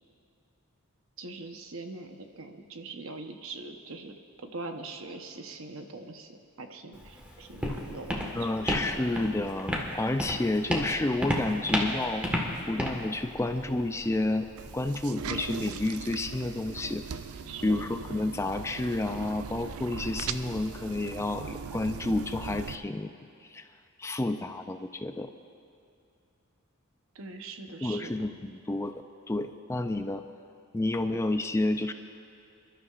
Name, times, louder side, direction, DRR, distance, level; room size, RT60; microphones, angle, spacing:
voice 1, 1.2-4.1 4.4-8.5 17.5-17.9 27.1-28.3 31.1-31.2, right 3 dB, 65° right, 5 dB, 0.9 m, -42 dB
Walk footsteps, 6.9-14.9, equal, 5° right, 1.5 m, -33 dB
voice 2, 8.3-12.3 12.7-17.0 17.6-23.1 23.4-23.7 24.0-25.3 27.8-28.9 29.3-30.3 30.7-31.9, left 2 dB, 15° left, 8 dB, 0.4 m, -30 dB
sound 1, 14.6-22.8, right 6 dB, 85° right, 0.5 m, -39 dB
27.0 x 12.5 x 2.5 m, 2.5 s
head